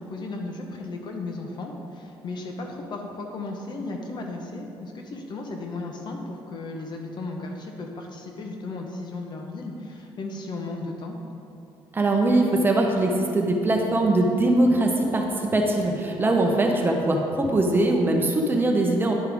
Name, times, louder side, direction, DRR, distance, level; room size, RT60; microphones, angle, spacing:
voice 1, 0.0-11.2, left 2 dB, 55° left, 2 dB, 1.0 m, -35 dB
voice 2, 11.9-19.1, right 2 dB, 25° right, 1 dB, 0.9 m, -21 dB
10.5 x 5.6 x 3.5 m, 2.6 s
cardioid pair, 120°, 9 cm